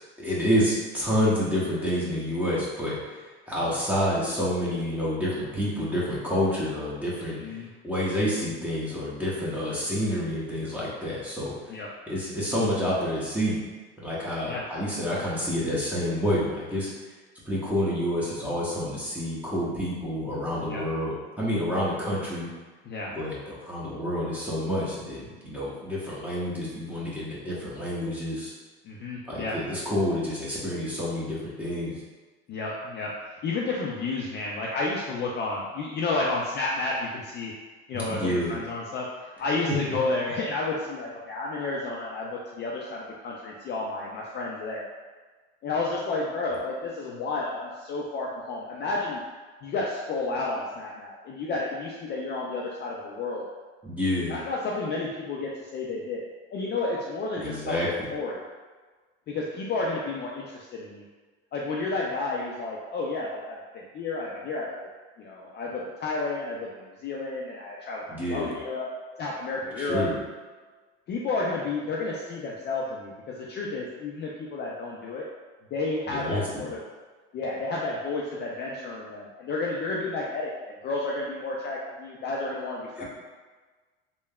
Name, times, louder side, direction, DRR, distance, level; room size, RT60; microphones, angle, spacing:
voice 1, 0.2-2.9 3.5-7.4 7.8-11.5 12.1-13.6 14.0-16.9 17.4-22.5 23.1-28.5 29.3-31.9 37.9-38.6 39.7-39.8 53.8-54.4 57.4-57.9 68.1-68.6 69.8-70.1 76.1-76.7 83.0-83.1, equal, 5° right, -7 dB, 0.9 m, -28 dB
voice 2, 28.8-29.6 32.5-33.1 33.4-37.5 37.9-44.8 45.6-49.2 49.6-53.4 54.3-56.2 56.5-58.4 59.3-61.0 61.5-64.9 65.2-68.9 69.2-70.1 71.1-75.3 75.7-76.8 77.3-83.0, left 3 dB, 35° left, -3 dB, 0.4 m, -31 dB
3.3 x 2.1 x 2.3 m, 1.4 s
supercardioid pair, 95°, 30 cm